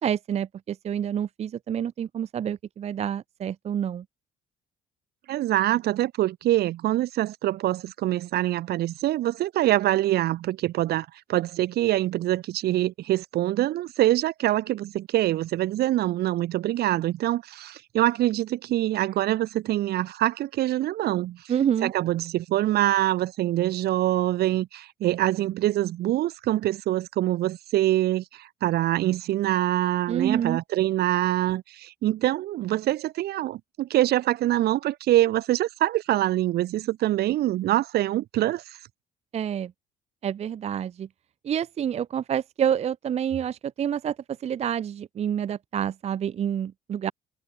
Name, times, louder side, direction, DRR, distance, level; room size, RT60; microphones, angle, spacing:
voice 1, 0.0-4.0 21.5-21.9 30.1-30.6 39.3-39.7 40.2-41.1 41.4-44.2 44.4-47.1, right 9 dB, 40° right, 0.6 m, -28 dB
voice 2, 5.3-21.4 21.8-38.6, right 14 dB, 70° right, 2.0 m, -25 dB
cardioid pair, 110°, 17 cm